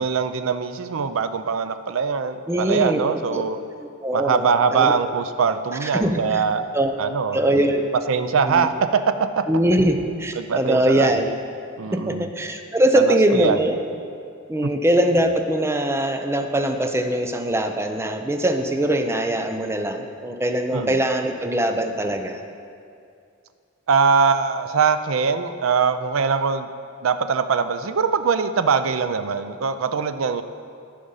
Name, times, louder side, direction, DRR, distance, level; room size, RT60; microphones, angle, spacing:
voice 1, 0.0-3.6 4.1-6.6 7.0-7.4 8.1-9.5 10.4-11.1 11.8-12.3 12.9-13.6 20.7-21.0 23.9-26.7 27.0-30.4, right 5 dB, 70° right, 10 dB, 0.5 m, -22 dB
voice 2, 2.5-3.0 3.3-3.4 4.0-4.9 5.8-6.2 6.7-6.9 7.3-7.8 8.4-8.7 9.5-11.3 12.1-13.8 14.5-22.4, right 1 dB, 10° right, 5 dB, 0.5 m, -22 dB
13.5 x 5.1 x 5.6 m, 2.4 s
head